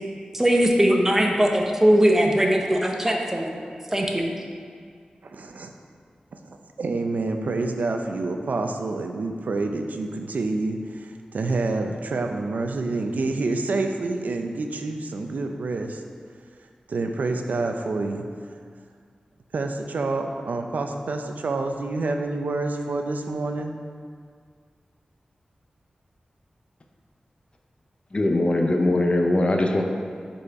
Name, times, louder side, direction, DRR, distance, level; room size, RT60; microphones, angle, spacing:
voice 1, 0.3-3.6 3.9-4.3, equal, 15° right, 1 dB, 0.7 m, -20 dB
voice 2, 5.2-5.7 6.3-16.0 16.9-18.3 19.5-23.7, right 3 dB, 85° right, 4 dB, 0.4 m, -28 dB
voice 3, 28.1-29.8, left 1 dB, 40° left, 3 dB, 0.6 m, -21 dB
5.4 x 4.2 x 4.6 m, 2.1 s
wide cardioid pair, 90°, 3 cm